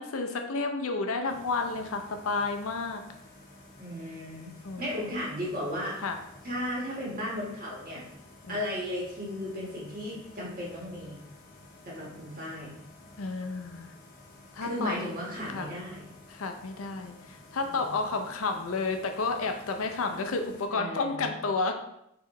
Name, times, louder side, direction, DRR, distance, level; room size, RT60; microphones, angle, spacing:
voice 1, 0.0-3.0 4.6-4.9 6.0-6.2 8.4-8.6 13.2-14.0 14.5-15.0 15.4-15.7 16.3-21.7, left 3 dB, 85° left, 5 dB, 0.6 m, -31 dB
sound 1, 1.3-20.7, left 2 dB, 40° left, 0.8 m, -52 dB
voice 2, 3.8-6.0 6.4-8.0 8.5-11.2 11.8-12.7 14.6-16.1 17.7-18.0 20.7-21.2, left 1 dB, 45° right, -5 dB, 1.5 m, -35 dB
3.9 x 3.8 x 3.1 m, 0.80 s
head